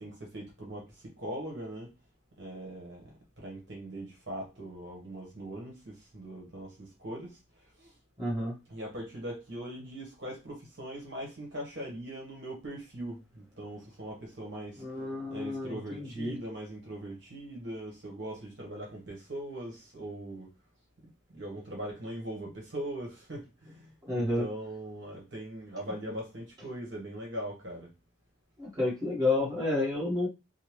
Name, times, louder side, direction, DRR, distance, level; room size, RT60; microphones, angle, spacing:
voice 1, 0.0-1.9 2.4-7.9 8.7-14.8 15.3-20.5 21.3-27.9, right 1 dB, 55° right, 1.2 m, -41 dB
voice 2, 8.2-8.5 14.8-16.3 24.0-24.4 28.6-30.3, left 2 dB, 15° right, 1.5 m, -30 dB
3.7 x 2.2 x 3.1 m
head